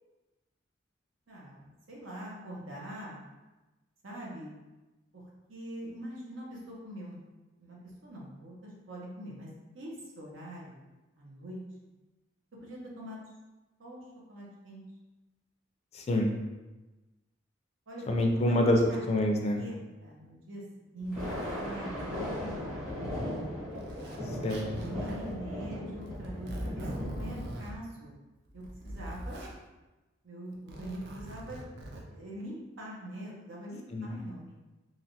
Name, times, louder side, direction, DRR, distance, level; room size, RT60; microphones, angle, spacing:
voice 1, 1.3-3.2 4.0-4.5 5.1-7.2 7.6-9.5 9.7-10.8 11.2-11.6 12.6-13.2 13.8-14.0 14.3-14.8 17.9-18.1 18.3-19.0 19.6-19.7 20.0-23.4 24.8-28.1 28.5-29.5 30.2-31.6 32.1-34.5, right 1 dB, 80° right, -4 dB, 0.8 m, -43 dB
voice 2, 15.9-16.3 18.1-19.6 24.4-24.7 33.9-34.2, left 1 dB, 35° left, 2 dB, 0.4 m, -26 dB
Thunder, 21.0-27.2, left 1 dB, 40° right, 1.4 m, -37 dB
Zipper (clothing), 22.9-23.0 23.8-24.2 24.5-25.3 26.0-27.7 28.5-29.5 30.5-32.0, right 1 dB, 60° right, 0.5 m, -41 dB
3.1 x 2.5 x 2.7 m, 1.1 s
head